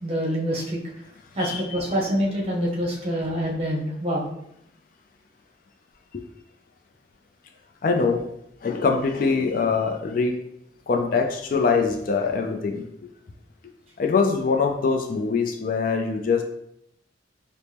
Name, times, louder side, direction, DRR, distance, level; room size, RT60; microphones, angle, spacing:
voice 1, 0.0-0.8 1.4-4.3, equal, 30° right, -4 dB, 0.8 m, -26 dB
voice 2, 1.4-2.0 6.1-6.2 7.8-8.3 8.6-10.4 10.9-12.9 14.0-16.4, left 4 dB, 45° left, 4 dB, 0.3 m, -23 dB
4.2 x 2.0 x 3.3 m, 0.77 s
head